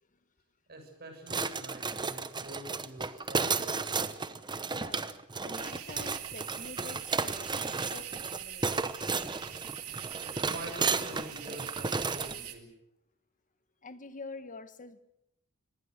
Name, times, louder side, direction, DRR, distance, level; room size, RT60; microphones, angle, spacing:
voice 1, 0.7-3.7 10.2-12.7, right 1 dB, 45° right, 4 dB, 7.4 m, -45 dB
sound 1, 1.3-12.4, right 4 dB, 20° right, 0.9 m, -33 dB
voice 2, 4.7-5.0 5.4-7.5 7.9-9.0 13.8-15.0, left 3 dB, 35° left, 11 dB, 1.4 m, -46 dB
sound 2, 5.5-12.5, right 11 dB, 90° right, 2.6 m, -43 dB
25.0 x 20.5 x 6.7 m, 0.80 s
head